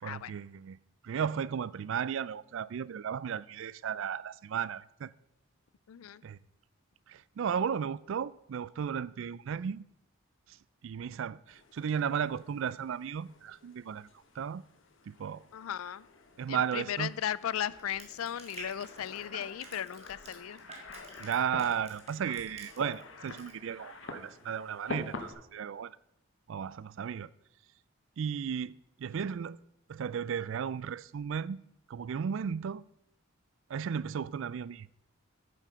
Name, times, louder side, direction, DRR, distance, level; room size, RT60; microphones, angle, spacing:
voice 1, 0.0-0.8 1.0-5.1 6.2-6.4 7.1-9.8 10.8-14.1 14.4-14.6 15.1-15.4 16.4-17.1 21.2-25.9 26.5-27.3 28.2-28.7 29.0-29.6 29.9-31.6 31.9-32.8 33.7-34.9, right 7 dB, 65° right, 0.3 m, -34 dB
voice 2, 5.9-6.2 15.5-16.1 16.5-20.6, left 10 dB, 85° left, 0.4 m, -36 dB
sound 1, 11.5-25.3, left 3 dB, 70° left, 1.2 m, -48 dB
Crushing, 17.7-23.0 23.3-23.5, right 4 dB, 30° right, 2.0 m, -49 dB
9.3 x 7.6 x 5.6 m
head